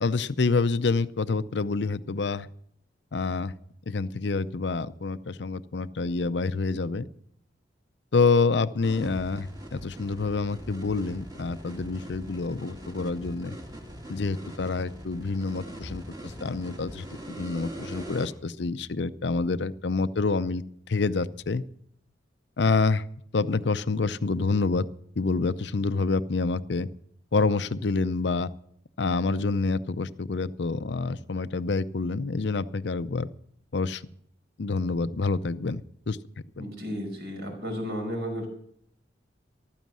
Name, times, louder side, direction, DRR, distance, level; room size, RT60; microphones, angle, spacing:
voice 1, 0.0-2.5 3.1-3.5 3.9-7.0 8.1-13.6 14.1-21.6 22.6-23.0 23.3-24.9 25.2-26.9 27.3-28.5 29.0-33.3 33.7-34.0 34.6-36.2 36.6-36.7, left 3 dB, 70° left, 14 dB, 0.6 m, -27 dB
sound 1, 8.8-18.3, right 1 dB, 20° right, 2.5 m, -42 dB
voice 2, 36.6-38.5, equal, 60° right, 1 dB, 5.7 m, -33 dB
15.0 x 12.5 x 6.2 m, 0.67 s
head